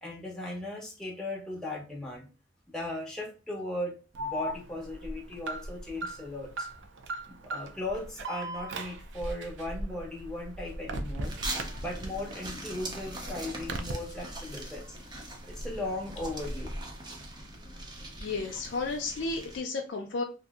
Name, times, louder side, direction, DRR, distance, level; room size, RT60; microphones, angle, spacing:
voice 1, 0.0-2.3 2.7-6.7 7.3-11.3 11.8-15.0 15.4-16.7, left 1 dB, 5° left, -2 dB, 0.8 m, -37 dB
Alarm, 4.1-12.3 12.7-13.9, right 1 dB, 90° right, 0.4 m, -38 dB
sound 1, 11.2-19.6, right 1 dB, 25° right, 0.6 m, -41 dB
voice 2, 18.2-20.2, left 3 dB, 75° left, 2 dB, 0.4 m, -33 dB
3.0 x 2.6 x 2.3 m, 0.33 s
head